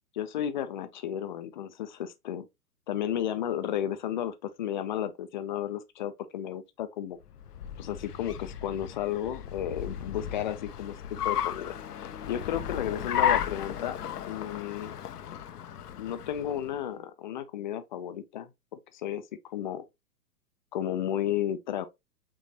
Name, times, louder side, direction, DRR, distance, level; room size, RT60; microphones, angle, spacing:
voice 1, 0.1-2.5 2.9-7.2 7.8-11.0 11.2-11.8 12.3-14.0 14.3-14.9 16.0-18.5 18.9-19.2 19.5-19.8 20.7-21.9, left 10 dB, 30° left, 0.5 m, -33 dB
Car, 7.2-16.8, left 9 dB, 75° left, 0.6 m, -34 dB
5.3 x 3.1 x 2.9 m
figure-of-eight pair, 115°, 47 cm